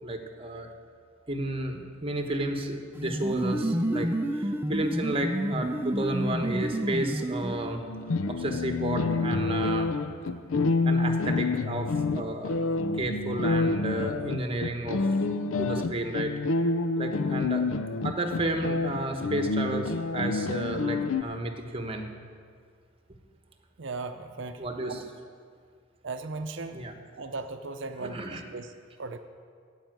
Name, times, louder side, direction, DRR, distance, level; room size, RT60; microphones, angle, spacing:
voice 1, 0.0-0.7 1.3-7.8 8.3-9.9 10.8-15.0 15.6-16.3 17.0-17.6 18.0-22.1 24.6-25.0 26.7-26.9 28.0-28.4, right 1 dB, 25° right, 4 dB, 1.1 m, -32 dB
sound 1, 2.9-7.9, right 1 dB, 10° right, 0.5 m, -29 dB
sound 2, 7.8-21.2, left 3 dB, 75° left, 0.5 m, -28 dB
voice 2, 23.8-25.0 26.0-26.8 27.2-28.7 29.0-29.2, right 3 dB, 60° right, 7 dB, 0.6 m, -37 dB
15.0 x 5.6 x 9.1 m, 2.1 s
head